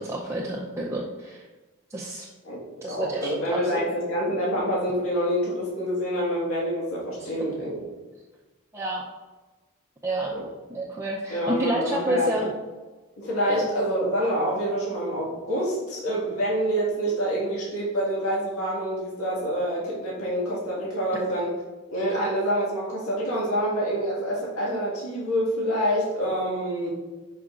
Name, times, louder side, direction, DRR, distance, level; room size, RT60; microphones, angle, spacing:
voice 1, 0.0-1.5 1.9-2.3 2.8-3.9 7.2-7.3 8.7-9.0 10.0-10.3 10.7-12.5 13.5-13.6, right 1 dB, 15° right, -4 dB, 0.5 m, -29 dB
voice 2, 2.4-7.8 10.3-10.5 11.3-12.4 13.2-21.5 21.9-26.9, equal, 80° left, -6 dB, 1.8 m, -27 dB
11.0 x 4.9 x 2.5 m, 1.2 s
head